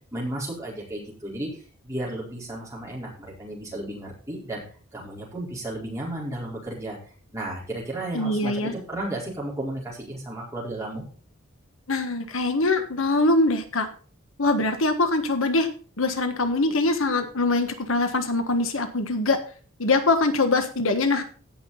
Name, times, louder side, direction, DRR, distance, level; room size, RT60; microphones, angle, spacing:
voice 1, 0.1-4.6 4.9-7.0 7.3-11.0, right 1 dB, 15° right, -4 dB, 4.5 m, -33 dB
voice 2, 8.1-8.7 11.9-13.9 14.4-15.7 16.0-19.4 19.8-21.2, left 2 dB, 75° left, 7 dB, 1.5 m, -23 dB
16.0 x 6.1 x 4.2 m, 0.40 s
head